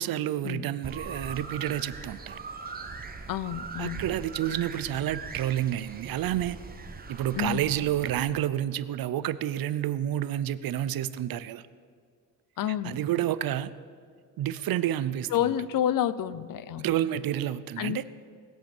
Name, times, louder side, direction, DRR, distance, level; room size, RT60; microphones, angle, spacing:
voice 1, 0.0-2.4 3.8-6.6 7.1-11.6 12.8-13.7 14.4-15.5 16.8-18.0, right 12 dB, 80° right, 15 dB, 0.7 m, -29 dB
sound 1, 0.8-8.2, right 4 dB, 25° right, 1.0 m, -41 dB
voice 2, 3.3-4.0 7.3-7.7 12.6-13.0 15.3-16.9 17.8-18.0, left 11 dB, 70° left, 16 dB, 0.6 m, -29 dB
20.0 x 7.8 x 7.2 m, 2.1 s
wide cardioid pair, 175°, 35 cm